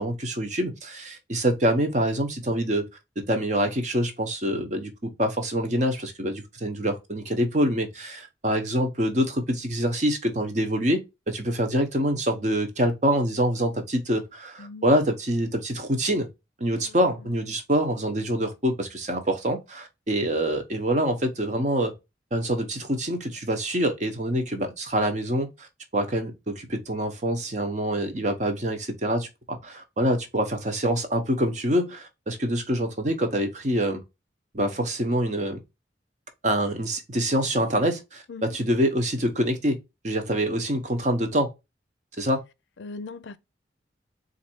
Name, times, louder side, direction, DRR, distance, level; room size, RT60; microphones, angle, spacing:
voice 1, 0.0-2.9 3.3-16.3 16.6-21.9 22.3-25.7 25.9-34.0 34.5-35.6 36.4-39.8 40.0-41.5 42.2-42.4, equal, 40° right, 0.9 m, -25 dB
voice 2, 42.8-43.4, left 3 dB, 75° left, 0.5 m, -39 dB
4.1 x 2.6 x 4.4 m
head